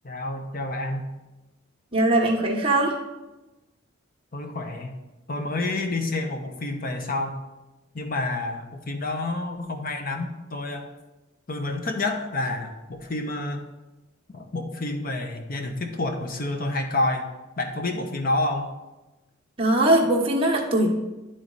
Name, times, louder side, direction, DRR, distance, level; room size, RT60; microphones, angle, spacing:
voice 1, 0.0-1.0 4.3-5.0 5.3-7.4 7.9-10.9 11.5-13.7 14.3-17.3 17.6-18.7, left 2 dB, 45° left, 5 dB, 0.9 m, -29 dB
voice 2, 1.9-3.0 19.6-20.9, right 1 dB, 30° right, -1 dB, 1.2 m, -21 dB
11.0 x 3.8 x 4.0 m, 1.1 s
head